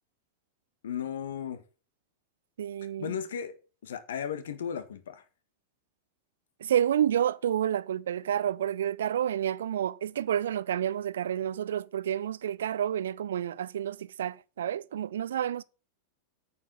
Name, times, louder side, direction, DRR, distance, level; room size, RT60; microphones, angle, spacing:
voice 1, 0.8-1.6 3.0-3.5 3.8-5.2, left 8 dB, 60° left, 1.7 m, -35 dB
voice 2, 2.6-3.1 6.6-15.6, right 10 dB, 60° right, 0.5 m, -29 dB
9.3 x 7.4 x 6.8 m
figure-of-eight pair, 90°, 0 cm